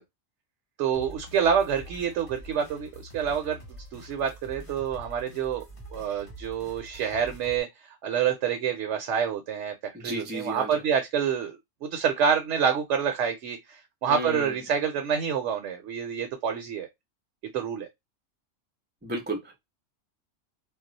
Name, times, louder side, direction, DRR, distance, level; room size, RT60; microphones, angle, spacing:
voice 1, 0.8-3.6 3.9-5.6 5.9-7.7 8.0-9.7 10.0-16.9 17.5-17.9, right 7 dB, 70° right, 0.9 m, -27 dB
sound 1, 0.9-7.6, right 1 dB, 25° left, 1.1 m, -45 dB
voice 2, 9.9-10.8 14.1-14.5 19.0-19.6, right 1 dB, 15° right, 0.3 m, -33 dB
2.4 x 2.0 x 3.8 m
omnidirectional pair, 1.4 m